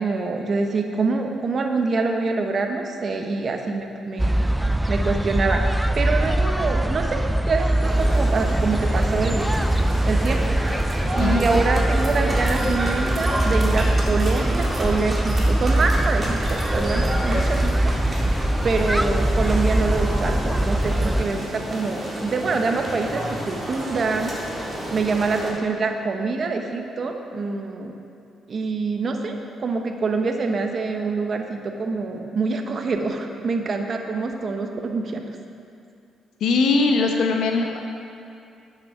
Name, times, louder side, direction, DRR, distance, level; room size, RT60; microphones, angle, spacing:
voice 1, 0.0-4.4 4.9-7.2 7.5-9.5 10.0-10.4 11.1-17.9 18.6-24.3 24.9-27.9 28.5-35.2, right 4 dB, 45° right, 4 dB, 0.9 m, -25 dB
sound 1, 4.2-21.2, right 1 dB, 5° right, 0.3 m, -22 dB
sound 2, 7.8-25.5, equal, 25° right, 1.9 m, -31 dB
voice 2, 36.4-37.8, left 3 dB, 80° left, 3 dB, 1.0 m, -20 dB
8.5 x 6.8 x 5.8 m, 2.6 s
cardioid pair, 100°, 0 cm